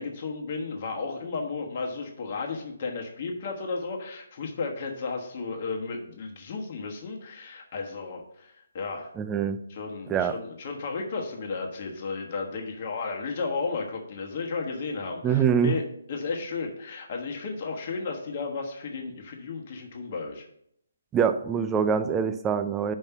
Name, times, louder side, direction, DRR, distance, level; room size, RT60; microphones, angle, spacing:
voice 1, 0.0-9.1 9.7-20.4, left 4 dB, 40° left, 1 dB, 1.3 m, -33 dB
voice 2, 9.2-9.6 10.1-10.3 15.2-15.8 21.1-22.9, right 7 dB, 15° right, 9 dB, 0.4 m, -24 dB
5.5 x 5.3 x 5.8 m, 0.72 s
figure-of-eight pair, 145°, 0 cm